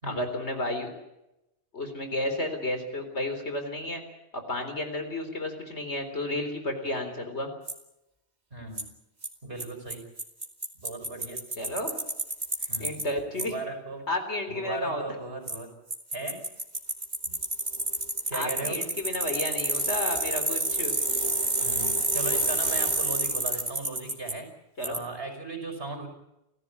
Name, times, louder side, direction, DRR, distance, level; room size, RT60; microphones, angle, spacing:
voice 1, 0.1-0.9 1.7-4.0 4.3-7.5 11.6-11.9 12.8-13.5 14.1-15.0 18.3-20.9 24.8-25.0, left 1 dB, 80° left, 6 dB, 4.2 m, -32 dB
Bicycle, 7.7-7.8 8.8-8.9 9.2-9.3 9.6-9.7 9.9-10.0 10.2-13.0 13.4-13.5 15.5-15.6 15.9-24.3 24.8-25.0, right 1 dB, 40° right, 2.6 m, -28 dB
voice 2, 8.5-8.9 9.4-10.0 10.7-11.4 11.7-11.8 12.7-13.1 13.3-14.1 14.5-15.7 16.1-16.4 17.2-17.4 18.0-18.8 21.6-24.5 24.8-26.1, right 2 dB, 60° right, 5 dB, 6.0 m, -37 dB
30.0 x 14.5 x 8.6 m, 0.89 s
omnidirectional pair, 1.1 m